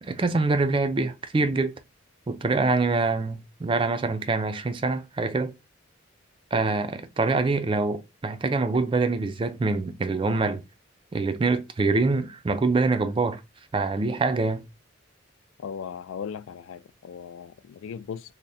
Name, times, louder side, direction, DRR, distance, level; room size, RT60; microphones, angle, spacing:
voice 1, 0.0-1.7 2.3-5.5 6.5-10.6 11.1-13.4 13.7-14.6, right 3 dB, 25° right, 0.3 m, -25 dB
voice 2, 15.6-18.3, left 7 dB, 80° left, 0.3 m, -37 dB
3.4 x 2.1 x 4.0 m
head